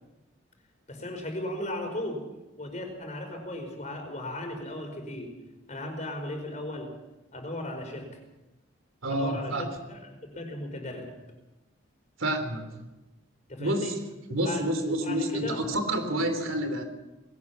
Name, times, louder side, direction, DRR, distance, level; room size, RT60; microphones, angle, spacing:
voice 1, 0.9-2.2 2.5-5.3 5.7-6.9 7.3-8.1 9.1-11.1 13.5-14.0 14.3-15.6, left 1 dB, 35° left, 4 dB, 4.9 m, -36 dB
voice 2, 9.0-9.6 12.2-12.8 13.6-13.9 14.3-16.8, right 1 dB, 85° right, 8 dB, 3.6 m, -29 dB
20.5 x 18.0 x 7.2 m, 1.0 s
head